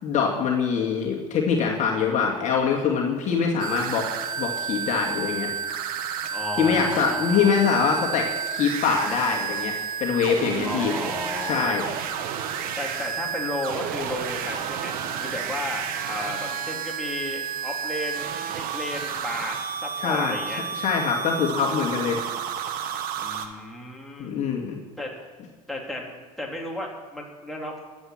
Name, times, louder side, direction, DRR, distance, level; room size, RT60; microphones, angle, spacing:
voice 1, 0.0-4.1 4.4-5.5 6.6-9.7 10.0-10.9 11.4-11.9 20.0-20.4 20.7-22.2 24.2-24.8, left 6 dB, 40° left, -1 dB, 2.4 m, -24 dB
sound 1, 3.6-23.5, right 7 dB, 50° right, 1.5 m, -31 dB
voice 2, 6.3-7.6 10.6-11.8 12.8-20.6 23.2-24.4 25.0-25.1 25.7-27.8, left 1 dB, ahead, -2 dB, 3.6 m, -34 dB
23.0 x 8.3 x 6.0 m, 1.4 s
figure-of-eight pair, 70°, 19 cm